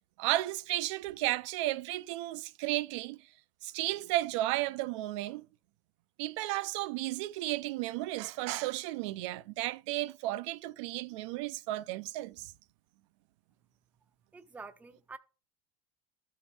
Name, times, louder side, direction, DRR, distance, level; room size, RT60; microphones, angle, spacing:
voice 1, 0.2-3.2 3.6-5.5 6.2-12.5, right 16 dB, 85° right, 0.4 m, -33 dB
voice 2, 14.3-15.2, right 4 dB, 10° right, 0.4 m, -47 dB
13.0 x 4.4 x 3.3 m
supercardioid pair, 140°, 15 cm